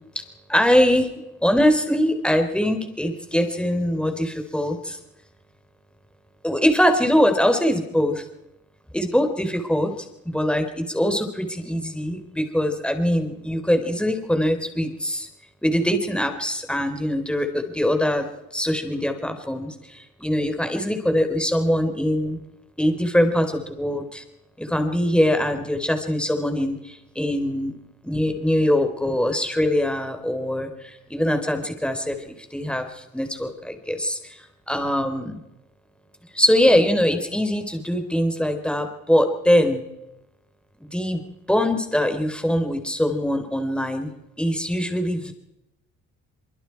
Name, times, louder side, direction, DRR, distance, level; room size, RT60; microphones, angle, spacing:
voice 1, 0.5-1.1 1.4-5.0 6.4-8.2 8.9-9.9 10.2-15.3 15.6-18.3 18.5-22.4 22.8-24.2 24.6-27.7 28.0-34.4 34.7-35.4 36.3-39.8 40.8-41.2 41.5-44.1 44.4-45.3, equal, 5° left, 6 dB, 4.1 m, -22 dB
24.5 x 24.0 x 4.8 m, 0.89 s
cardioid pair, 90°, 30 cm